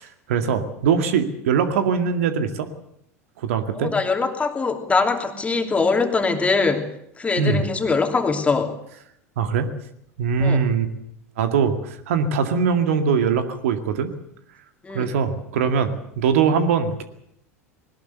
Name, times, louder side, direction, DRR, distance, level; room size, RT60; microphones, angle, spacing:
voice 1, 0.0-2.7 3.4-3.9 7.4-7.7 9.4-9.7 10.2-10.9 11.4-14.1 14.9-17.0, right 6 dB, 60° right, 8 dB, 2.1 m, -22 dB
voice 2, 3.8-6.9 7.2-8.7 10.4-10.6 14.8-15.1, left 4 dB, 15° left, 5 dB, 3.0 m, -22 dB
21.0 x 19.0 x 8.2 m, 0.74 s
figure-of-eight pair, 80°, 8 cm